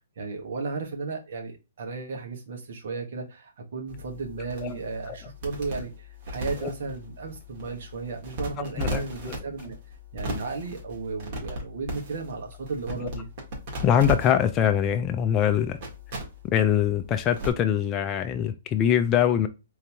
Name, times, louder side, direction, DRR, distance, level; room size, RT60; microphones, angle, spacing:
voice 1, 0.2-9.8 10.1-13.3, right 4 dB, 65° right, 1.3 m, -34 dB
sound 1, 3.9-17.5, equal, 50° right, 1.8 m, -37 dB
voice 2, 8.8-9.3 13.8-15.8 16.5-19.5, left 9 dB, 25° left, 0.4 m, -23 dB
3.9 x 2.9 x 3.4 m
hypercardioid pair, 140°, 0 cm